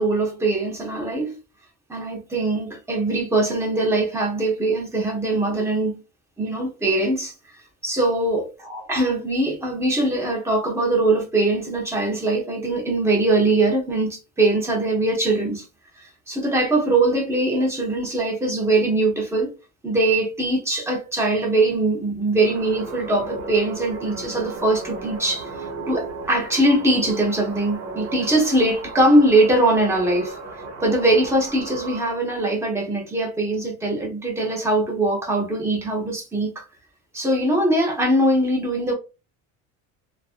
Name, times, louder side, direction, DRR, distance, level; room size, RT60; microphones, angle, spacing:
voice 1, 0.0-1.4 1.9-6.0 6.4-15.7 16.0-19.5 19.8-30.4 30.8-36.6 37.1-38.9, right 2 dB, 10° right, 0.7 m, -22 dB
sound 1, 22.4-32.2, right 2 dB, 70° right, 1.2 m, -35 dB
2.6 x 2.5 x 2.4 m
cardioid pair, 155°, 33 cm